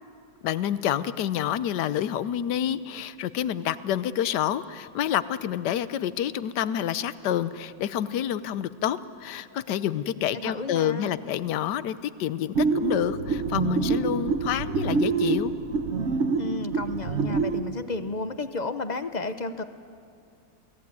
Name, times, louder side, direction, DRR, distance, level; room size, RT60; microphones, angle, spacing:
voice 1, 0.4-15.5, left 10 dB, 75° left, 15 dB, 1.3 m, -28 dB
voice 2, 10.2-11.1 16.4-19.6, left 3 dB, 35° left, 10 dB, 0.7 m, -32 dB
sound 1, 12.5-17.6, right 4 dB, 45° right, 1.2 m, -26 dB
27.5 x 18.5 x 9.6 m, 2.4 s
omnidirectional pair, 1.9 m